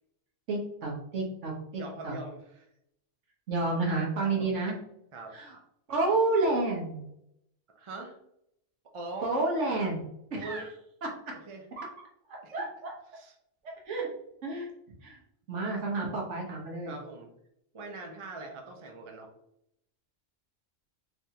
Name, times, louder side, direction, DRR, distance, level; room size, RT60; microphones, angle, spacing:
voice 1, 0.5-2.1 3.5-4.7 5.3-5.6 5.9-7.0 9.2-10.6 11.0-11.2 11.8-11.9 12.3-12.9 13.6-14.1 14.4-14.7 15.0-15.2 15.5-16.9, right 2 dB, 70° right, -1 dB, 1.4 m, -30 dB
voice 2, 1.7-2.7 4.2-4.5 5.1-5.4 7.7-8.2 8.9-9.4 10.4-10.7 11.4-11.7 12.4-12.6 13.1-13.3 16.9-17.3 17.7-19.3, right 2 dB, 35° right, 2 dB, 0.5 m, -42 dB
4.0 x 3.4 x 2.8 m, 0.77 s
omnidirectional pair, 1.3 m